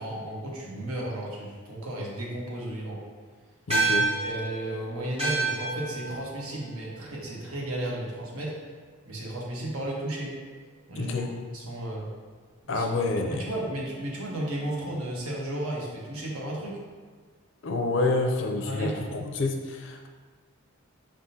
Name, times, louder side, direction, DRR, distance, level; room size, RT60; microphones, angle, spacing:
voice 1, 0.0-3.0 4.2-8.5 9.1-10.3 10.9-11.1 11.5-12.1 12.7-12.8 13.4-16.8 18.7-19.0, right 1 dB, 85° right, -3 dB, 1.1 m, -34 dB
voice 2, 3.7-4.1 10.9-11.3 12.7-13.5 17.6-20.1, left 2 dB, 55° left, 4 dB, 0.4 m, -28 dB
sound 1, 3.7-8.4, right 3 dB, 25° right, 0.9 m, -30 dB
5.3 x 3.6 x 2.7 m, 1.5 s
head